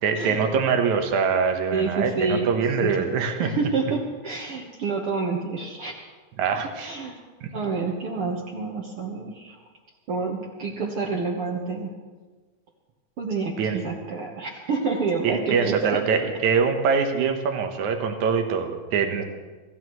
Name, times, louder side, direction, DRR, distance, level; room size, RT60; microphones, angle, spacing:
voice 1, 0.0-3.5 6.4-6.9 7.4-7.5 13.6-13.8 15.2-19.2, right 6 dB, 80° right, 5 dB, 2.7 m, -24 dB
voice 2, 1.7-2.5 2.8-3.0 3.4-6.0 6.8-7.2 7.5-9.6 10.1-11.9 13.2-16.0, right 4 dB, 55° right, -1 dB, 2.0 m, -28 dB
26.5 x 15.0 x 3.1 m, 1.3 s
omnidirectional pair, 3.3 m